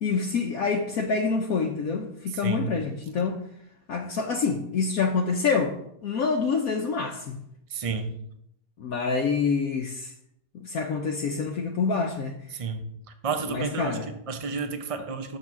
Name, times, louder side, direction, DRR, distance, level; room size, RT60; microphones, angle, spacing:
voice 1, 0.0-3.4 3.9-5.8 6.0-7.4 8.8-10.1 10.5-12.4 13.5-14.1, left 5 dB, 70° left, 1.2 m, -27 dB
voice 2, 2.3-2.7 7.7-8.1 12.5-12.9 13.2-14.0 14.3-15.4, right 5 dB, 35° right, 0.6 m, -31 dB
6.6 x 6.5 x 5.9 m
omnidirectional pair, 1.7 m